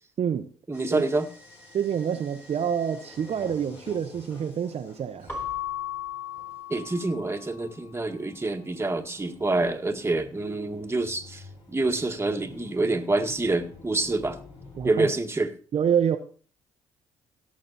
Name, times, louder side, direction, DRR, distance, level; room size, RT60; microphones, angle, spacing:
voice 1, 0.2-0.5 0.9-1.0 1.7-5.3 14.7-15.1 15.7-16.2, right 8 dB, 55° right, 5 dB, 1.1 m, -27 dB
sound 1, 0.7-15.1, left 3 dB, 55° left, 5.8 m, -50 dB
voice 2, 0.7-1.3 6.7-11.4 11.7-14.4 14.8-15.5, right 2 dB, 20° right, 5 dB, 1.8 m, -27 dB
Keyboard (musical) / Bell, 5.3-7.7, left 9 dB, 15° left, 3.8 m, -35 dB
17.5 x 6.5 x 4.3 m, 0.41 s
supercardioid pair, 60°, 13 cm